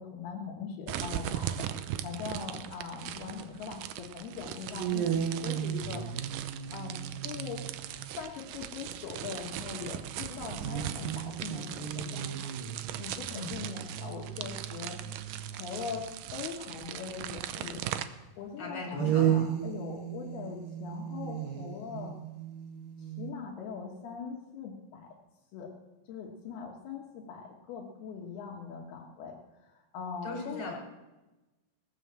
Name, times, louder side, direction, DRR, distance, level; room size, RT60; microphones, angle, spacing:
voice 1, 0.0-1.7 2.0-6.0 6.7-12.5 13.0-15.0 15.2-17.8 18.4-22.1 23.0-25.1 25.5-25.7 26.1-29.4 29.7-30.7, left 6 dB, 75° left, -1 dB, 3.2 m, -41 dB
sound 1, 0.9-18.0, right 11 dB, 85° right, 1.8 m, -39 dB
sound 2, 4.8-8.1 10.6-16.0 18.9-23.3, right 9 dB, 70° right, 2.6 m, -34 dB
voice 2, 18.6-19.5 30.2-30.8, left 2 dB, 25° left, -1 dB, 4.4 m, -38 dB
19.0 x 7.7 x 7.4 m, 1.1 s
omnidirectional pair, 4.7 m